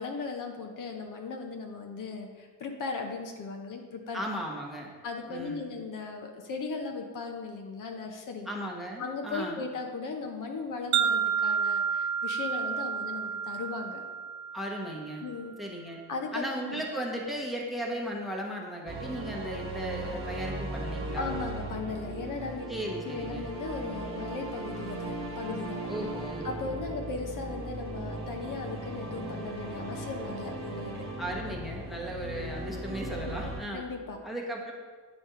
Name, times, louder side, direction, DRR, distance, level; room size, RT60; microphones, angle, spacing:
voice 1, 0.0-4.2 5.0-8.5 9.0-14.0 15.2-15.5 16.1-16.8 21.2-22.6 23.0-25.9 26.4-31.0 33.7-34.2, left 4 dB, 55° left, 3 dB, 0.9 m, -37 dB
voice 2, 4.1-4.9 5.3-5.6 8.5-9.6 14.5-15.2 15.6-16.0 16.3-21.4 22.7-23.5 25.9-26.5 31.2-33.8 34.2-34.7, equal, ahead, -1 dB, 1.0 m, -36 dB
Wind chime, 10.9-15.2, right 7 dB, 50° right, 0.5 m, -30 dB
sound 1, 18.9-33.6, right 2 dB, 35° right, 1.3 m, -37 dB
9.0 x 3.3 x 5.5 m, 1.5 s
cardioid pair, 130°, 37 cm